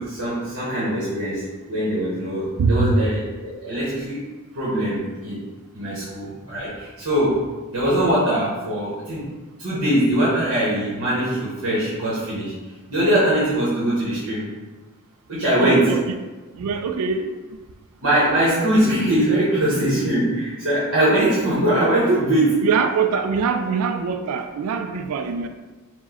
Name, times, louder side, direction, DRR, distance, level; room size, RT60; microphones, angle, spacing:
voice 1, 0.0-4.3 4.5-5.4 5.7-9.3 9.6-12.5 12.9-14.4 15.3-15.9 18.0-22.7, right 1 dB, 65° right, -9 dB, 1.1 m, -21 dB
voice 2, 2.6-3.0 5.9-6.1 15.6-16.0 16.5-17.4 22.6-25.5, right 5 dB, 90° right, 8 dB, 0.3 m, -23 dB
4.5 x 2.1 x 4.3 m, 1.3 s
head